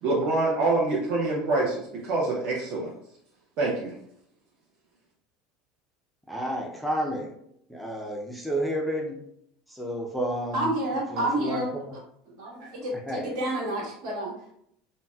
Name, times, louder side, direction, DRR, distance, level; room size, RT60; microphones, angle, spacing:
voice 1, 0.0-2.9 3.6-3.9, right 2 dB, 45° right, -5 dB, 0.6 m, -25 dB
voice 2, 6.3-7.3 7.7-9.2 9.7-10.7 11.1-11.9 13.1-13.3, equal, ahead, -2 dB, 0.4 m, -31 dB
voice 3, 10.5-11.7 12.4-14.3, right 1 dB, 70° right, -3 dB, 1.3 m, -29 dB
3.9 x 2.0 x 2.2 m, 0.70 s
cardioid pair, 150°, 2 cm